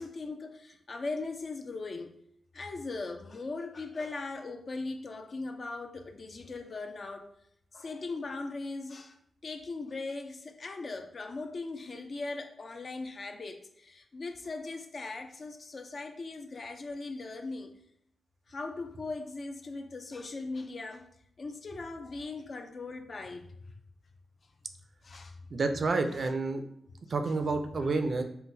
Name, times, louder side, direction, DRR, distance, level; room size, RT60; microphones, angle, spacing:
voice 1, 0.0-2.1 2.5-7.3 7.7-9.2 9.4-17.7 18.5-21.1 21.4-23.6 25.0-25.4 26.1-26.3, left 3 dB, 50° left, 5 dB, 0.4 m, -39 dB
voice 2, 25.5-26.6 27.1-28.2, right 3 dB, 55° right, 6 dB, 0.3 m, -29 dB
3.7 x 2.1 x 2.6 m, 0.71 s
cardioid pair, 75°, 0 cm